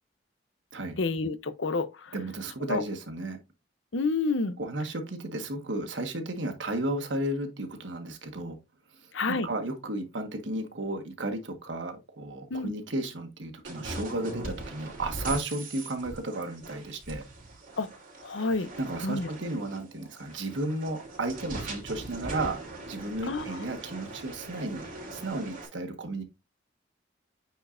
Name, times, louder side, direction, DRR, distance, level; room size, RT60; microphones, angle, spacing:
voice 1, 1.0-2.1 2.6-2.8 3.9-4.6 9.1-9.5 12.5-12.7 17.8-17.9 18.2-18.7 19.0-19.3 23.2-23.7, left 3 dB, 85° left, 0.7 m, -29 dB
voice 2, 2.1-3.4 4.6-8.6 9.3-17.2 18.8-22.6 22.9-24.8 25.1-26.2, right 2 dB, 80° right, 1.5 m, -33 dB
sound 1, 13.6-25.7, right 2 dB, 50° right, 3.5 m, -41 dB
9.1 x 4.4 x 2.6 m
head